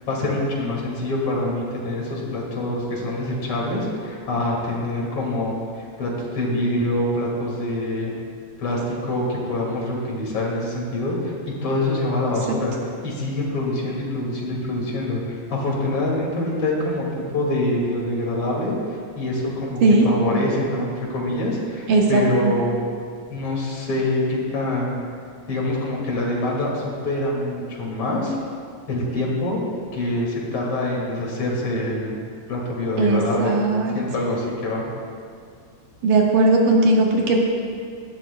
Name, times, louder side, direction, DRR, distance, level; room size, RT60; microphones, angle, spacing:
voice 1, 0.0-8.1 8.6-11.3 11.6-12.7 13.0-17.1 17.3-22.8 23.3-25.0 25.5-28.4 28.9-29.6 29.9-32.2 32.5-33.6 33.9-34.9, left 1 dB, 45° left, -4 dB, 3.1 m, -25 dB
voice 2, 21.9-22.5 33.0-33.9 36.0-37.4, right 2 dB, 85° right, -1 dB, 3.0 m, -18 dB
18.0 x 13.0 x 2.3 m, 2.2 s
omnidirectional pair, 3.6 m